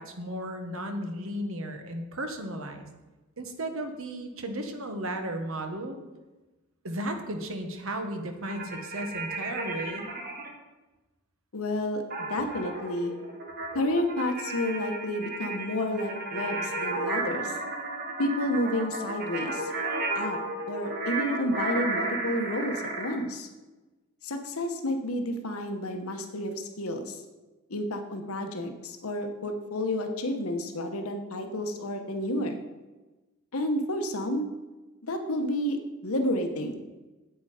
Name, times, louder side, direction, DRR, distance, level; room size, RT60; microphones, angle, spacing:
voice 1, 0.0-2.9 3.4-6.0 6.8-10.1, right 1 dB, 75° right, 5 dB, 1.3 m, -34 dB
sound 1, 8.4-10.5 12.1-23.2, right 2 dB, 45° right, 1.6 m, -33 dB
voice 2, 11.5-13.1 13.7-17.6 18.2-19.7 20.1-20.4 20.7-23.5 24.2-27.2 27.7-32.6 33.5-34.5 35.1-36.8, left 1 dB, 90° left, 5 dB, 1.1 m, -30 dB
9.0 x 8.2 x 5.0 m, 1.1 s
head